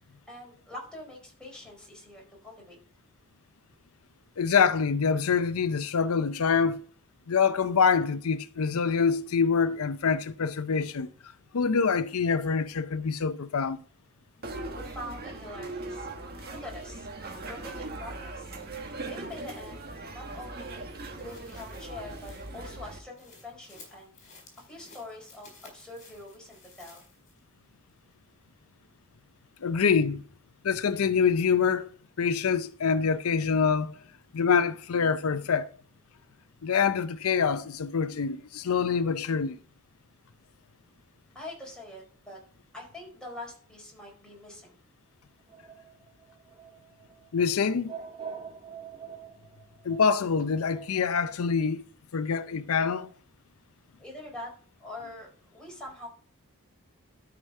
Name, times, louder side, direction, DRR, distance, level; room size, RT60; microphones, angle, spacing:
voice 1, 0.3-2.8 14.8-16.1 16.6-17.1 17.5-18.6 19.1-19.8 20.1-20.9 21.2-24.1 24.7-27.0 41.3-42.4 42.7-44.8 54.0-54.5 54.8-56.1, left 1 dB, 5° left, 4.6 m, -44 dB
voice 2, 4.4-6.8 7.3-11.1 11.5-13.8 29.6-30.2 30.6-31.9 32.2-33.9 34.3-35.7 36.6-39.6 47.3-47.9 49.8-51.8 52.1-53.1, left 6 dB, 80° left, 0.5 m, -25 dB
sound 1, 14.4-23.0, right 2 dB, 45° right, 1.5 m, -40 dB
sound 2, 21.2-27.5 27.9-28.0, left 4 dB, 35° left, 4.3 m, -55 dB
sound 3, 45.5-51.1, right 7 dB, 25° right, 1.0 m, -45 dB
12.5 x 5.0 x 5.4 m
head